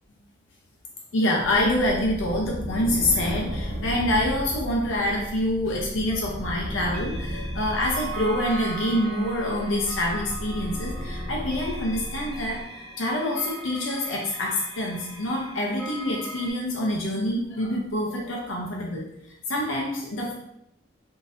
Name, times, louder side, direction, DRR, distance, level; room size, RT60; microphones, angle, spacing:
voice 1, 1.1-19.1 19.5-20.3, left 1 dB, 75° left, -2 dB, 0.6 m, -26 dB
sound 1, 1.4-12.6, equal, 35° right, 1.0 m, -35 dB
sound 2, 6.9-16.5, left 1 dB, 5° left, 0.5 m, -42 dB
sound 3, 7.8-13.6, right 8 dB, 55° left, 1.2 m, -41 dB
3.7 x 2.7 x 2.5 m, 0.78 s
head